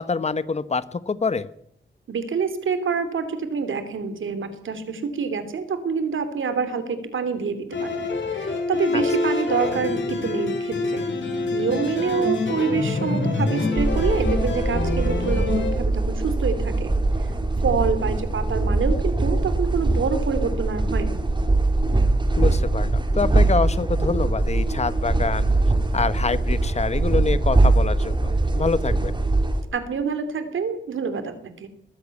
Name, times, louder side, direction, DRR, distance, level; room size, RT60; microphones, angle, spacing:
voice 1, 0.0-1.5 8.9-9.0 18.0-18.2 22.3-25.5 25.9-29.1, left 4 dB, 35° left, 15 dB, 1.0 m, -26 dB
voice 2, 2.1-11.0 11.5-16.9 17.6-21.2 29.7-31.7, right 5 dB, 85° right, 10 dB, 3.1 m, -27 dB
sound 1, 7.7-15.7, left 3 dB, 75° left, 6.2 m, -26 dB
sound 2, 13.8-29.6, right 2 dB, 25° right, 2.6 m, -22 dB
20.5 x 15.0 x 8.4 m, 0.71 s
wide cardioid pair, 155°, 20 cm